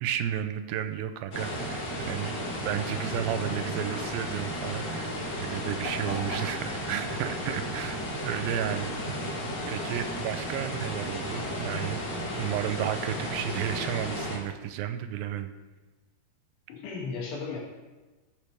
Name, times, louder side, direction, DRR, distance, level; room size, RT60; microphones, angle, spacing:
voice 1, 0.0-2.4 2.6-6.6 6.9-8.0 8.2-8.9 9.7-15.5, right 10 dB, 90° right, 10 dB, 2.4 m, -33 dB
sound 1, 1.3-14.4, equal, 35° left, 2.7 m, -34 dB
voice 2, 5.8-6.5 11.7-11.9 16.7-17.6, left 3 dB, 80° left, -4 dB, 4.1 m, -36 dB
14.0 x 6.6 x 3.4 m, 1.2 s
omnidirectional pair, 4.1 m